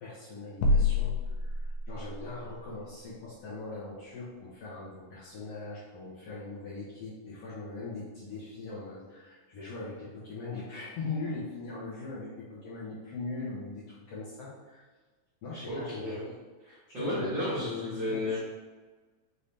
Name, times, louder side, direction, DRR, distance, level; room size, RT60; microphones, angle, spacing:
voice 1, 0.0-14.9 15.4-16.2 16.9-18.4, left 3 dB, 70° left, -8 dB, 1.6 m, -40 dB
sound 1, 0.6-2.2, left 3 dB, 90° left, 2.2 m, -27 dB
voice 2, 15.7-16.3 16.6-18.4, left 1 dB, 55° right, -12 dB, 1.4 m, -33 dB
5.4 x 2.7 x 3.3 m, 1.3 s
omnidirectional pair, 3.7 m